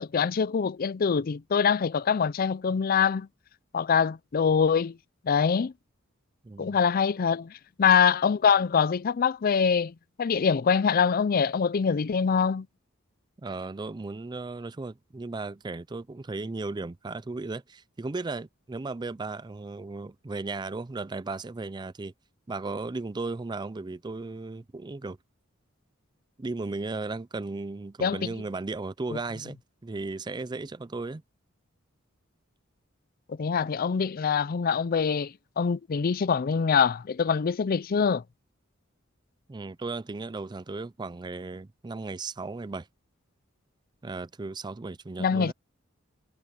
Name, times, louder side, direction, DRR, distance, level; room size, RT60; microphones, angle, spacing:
voice 1, 0.0-3.3 3.7-5.0 5.2-5.7 6.6-7.5 7.8-12.7 28.0-28.3 33.3-38.2 45.2-45.5, left 6 dB, 45° left, 0.4 m, -24 dB
voice 2, 6.4-6.8 13.4-22.1 22.5-25.2 26.4-29.6 29.8-31.2 39.5-42.9 44.0-45.5, right 3 dB, 20° right, 0.4 m, -35 dB
head